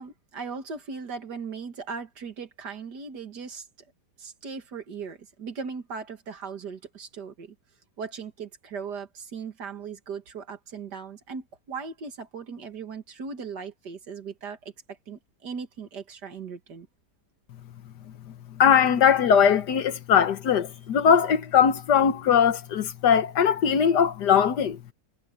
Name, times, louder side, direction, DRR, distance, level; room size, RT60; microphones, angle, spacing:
voice 1, 0.0-3.7 4.2-7.6 8.0-14.6 15.1-16.9, right 5 dB, 70° right, 2.5 m, -38 dB
voice 2, 18.6-24.8, left 7 dB, 70° left, 1.7 m, -20 dB
omnidirectional pair, 1.9 m